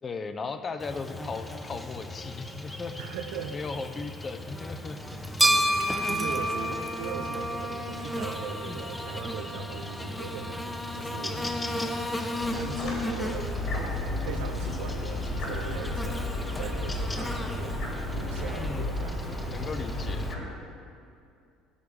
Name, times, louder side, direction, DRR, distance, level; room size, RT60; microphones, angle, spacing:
voice 1, 0.0-3.0 3.5-5.2 8.6-8.9 18.5-18.9 19.5-20.3, left 4 dB, 30° left, 8 dB, 0.8 m, -37 dB
Buzz, 0.8-20.3, left 1 dB, 15° left, 1.1 m, -36 dB
voice 2, 2.9-3.6 6.0-11.5 12.5-13.5 14.2-16.2 16.6-17.8 18.2-19.5, right 7 dB, 60° right, 6 dB, 0.7 m, -39 dB
sound 1, 5.0-18.9, right 1 dB, 10° right, 0.8 m, -34 dB
sound 2, 12.4-20.4, left 1 dB, 50° left, 3.3 m, -33 dB
14.0 x 4.7 x 8.7 m, 2.4 s
figure-of-eight pair, 60°, 0 cm